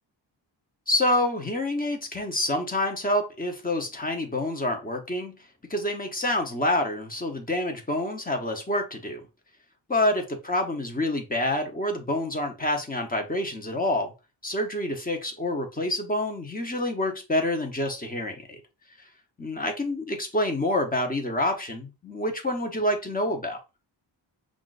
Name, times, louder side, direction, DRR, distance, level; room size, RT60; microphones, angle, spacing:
voice 1, 0.9-5.3 5.7-9.2 9.9-14.1 14.4-18.6 19.4-23.6, left 1 dB, 20° left, 0.9 m, -27 dB
5.8 x 2.5 x 2.5 m
wide cardioid pair, 115°, 45 cm